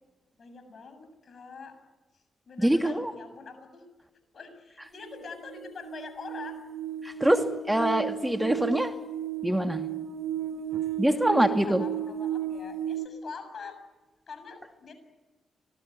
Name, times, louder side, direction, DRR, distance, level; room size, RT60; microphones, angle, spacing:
voice 1, 0.4-1.8 2.1-3.8 4.3-6.6 7.0-7.2 11.0-13.8 14.3-14.9, left 5 dB, 60° left, 8 dB, 7.4 m, -44 dB
voice 2, 2.6-3.1 7.0-8.9 9.4-9.8 11.0-11.8, right 1 dB, 10° right, 5 dB, 2.5 m, -24 dB
sound 1, 5.0-13.1, right 10 dB, 70° right, 1.4 m, -34 dB
25.5 x 20.5 x 9.7 m, 1.2 s
hypercardioid pair, 40°, 0 cm